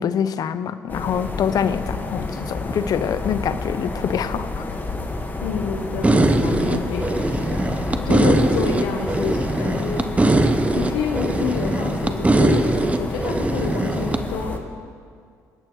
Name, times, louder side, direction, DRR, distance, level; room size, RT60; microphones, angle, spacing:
voice 1, 0.0-4.7, left 8 dB, 60° left, 13 dB, 0.6 m, -25 dB
sound 1, 0.9-14.6, left 2 dB, 25° left, 1.5 m, -30 dB
voice 2, 5.4-10.2 10.7-14.6, left 5 dB, 85° left, 2 dB, 1.0 m, -28 dB
sound 2, 6.0-14.2, right 2 dB, 20° right, 0.9 m, -21 dB
22.0 x 8.9 x 3.1 m, 2.1 s
supercardioid pair, 60°, 7 cm